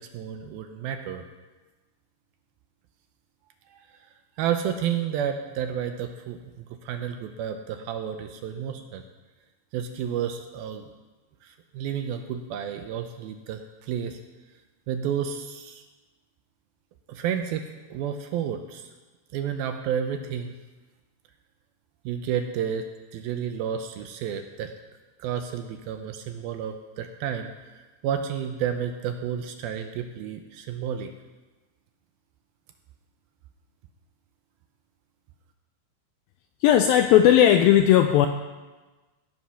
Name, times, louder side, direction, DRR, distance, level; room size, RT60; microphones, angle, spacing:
voice 1, 0.1-1.2 3.7-3.8 4.4-6.4 6.8-9.0 9.7-10.9 11.4-14.2 14.9-15.8 17.1-17.7 17.9-18.9 19.3-20.5 22.1-22.8 23.1-24.7 25.2-27.5 28.0-31.1, right 8 dB, 80° right, 6 dB, 2.3 m, -31 dB
voice 2, 36.6-38.3, left 11 dB, 85° left, 6 dB, 2.1 m, -17 dB
16.5 x 7.6 x 5.7 m, 1.2 s
omnidirectional pair, 4.7 m